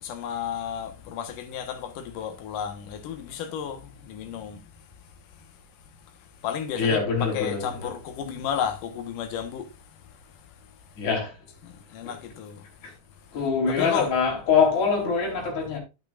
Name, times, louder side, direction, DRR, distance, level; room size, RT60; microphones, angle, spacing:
voice 1, 0.0-4.6 6.4-9.7 11.6-12.6 13.7-14.1, left 8 dB, 85° left, 3.0 m, -32 dB
voice 2, 6.8-7.9 8.2-8.4 11.0-11.3 12.8-12.9 13.3-15.8, left 5 dB, 65° left, 5.0 m, -24 dB
10.5 x 9.0 x 2.5 m
omnidirectional pair, 3.7 m